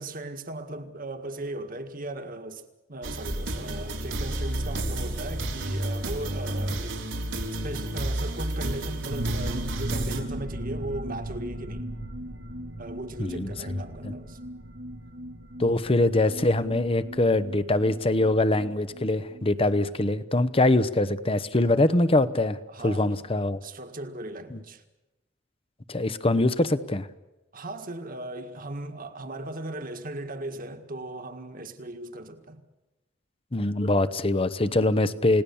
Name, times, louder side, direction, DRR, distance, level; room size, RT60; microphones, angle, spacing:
voice 1, 0.0-7.0 7.6-11.9 12.8-14.4 22.7-23.1 23.6-24.8 27.5-32.6, right 1 dB, 45° right, 1.8 m, -37 dB
sound 1, 3.0-10.2, right 1 dB, 90° right, 3.9 m, -31 dB
sound 2, 9.1-18.7 19.0-19.1 19.3-19.4, equal, 70° right, 1.9 m, -36 dB
voice 2, 13.2-13.5 15.6-23.6 24.5-24.6 25.9-27.1 33.5-35.4, left 2 dB, 30° left, 1.0 m, -23 dB
29.5 x 18.0 x 7.1 m
head